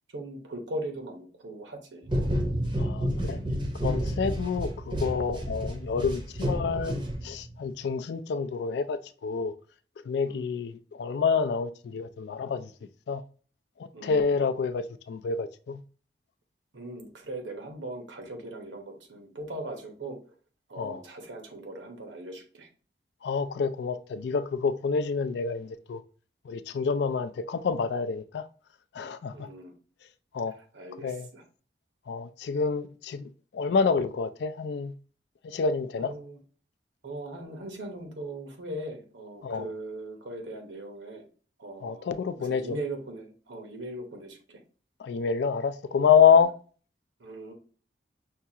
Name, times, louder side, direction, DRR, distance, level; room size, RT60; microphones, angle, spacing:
voice 1, 0.1-2.1 10.3-10.4 13.9-14.4 16.7-20.2 20.7-22.7 29.3-29.7 30.7-31.4 36.0-36.4 37.0-41.2 41.6-42.1 42.4-44.6 46.3-46.4 47.2-47.5, right 1 dB, 90° right, 1.0 m, -39 dB
sound 1, 2.1-7.6, equal, 25° right, 0.6 m, -30 dB
voice 2, 2.8-3.4 3.8-7.0 7.2-9.5 10.1-12.7 13.1-13.2 14.0-15.8 20.8-21.0 23.2-26.0 26.5-28.5 28.9-29.5 30.3-30.5 31.0-31.3 32.1-34.9 35.4-36.1 39.4-39.7 41.8-42.8 45.0-46.5, left 6 dB, 65° left, 0.3 m, -27 dB
5.6 x 2.3 x 2.8 m
head